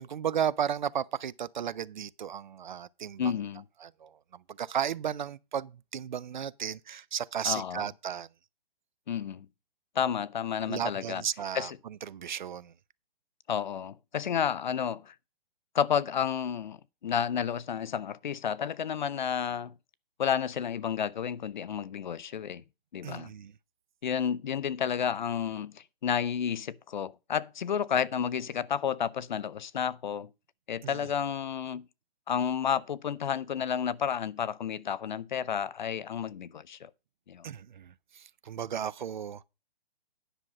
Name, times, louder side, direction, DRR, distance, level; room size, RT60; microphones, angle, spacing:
voice 1, 0.0-3.3 3.8-8.3 10.7-12.7 23.0-23.5 30.8-31.1 37.4-39.5, right 8 dB, 50° right, 0.5 m, -34 dB
voice 2, 3.2-3.6 7.4-7.8 9.1-9.5 10.0-11.2 11.5-11.8 13.5-15.1 15.7-16.8 17.0-19.7 20.2-22.6 22.9-23.3 24.0-30.3 30.7-31.9 32.3-36.9 37.3-37.4, left 8 dB, 50° left, 0.5 m, -31 dB
10.0 x 6.1 x 5.2 m
hypercardioid pair, 170°, 30 cm